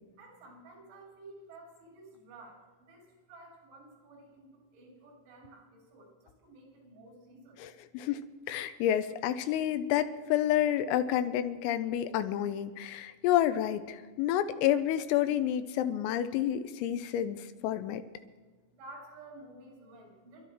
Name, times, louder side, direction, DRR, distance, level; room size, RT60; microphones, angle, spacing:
voice 1, 0.2-3.0 3.3-6.1 6.4-7.6 18.8-20.5, right 2 dB, 85° right, -2 dB, 5.9 m, -52 dB
voice 2, 7.6-8.2 8.5-18.0, left 11 dB, 90° left, 11 dB, 3.4 m, -29 dB
29.0 x 12.5 x 3.1 m, 1.4 s
omnidirectional pair, 5.9 m